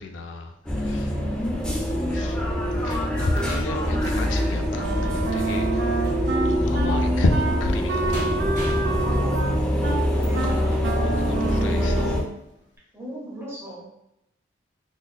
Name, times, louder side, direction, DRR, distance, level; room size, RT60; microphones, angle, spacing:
voice 1, 0.0-1.1 1.8-2.4 2.8-8.2 10.1-10.3 11.0-12.3, left 2 dB, 80° left, 5 dB, 0.5 m, -31 dB
sound 1, 0.6-12.2, equal, 5° left, 0.5 m, -24 dB
sound 2, 1.9-11.7 12.3-12.4 12.8-12.9, equal, 40° right, 1.3 m, -43 dB
Wind instrument woodwind instrument, 4.7-12.3, right 3 dB, 60° right, 0.4 m, -29 dB
voice 2, 9.0-9.5 10.2-11.2 12.9-13.9, right 1 dB, 15° right, -7 dB, 1.3 m, -38 dB
3.9 x 3.0 x 2.3 m, 0.85 s
head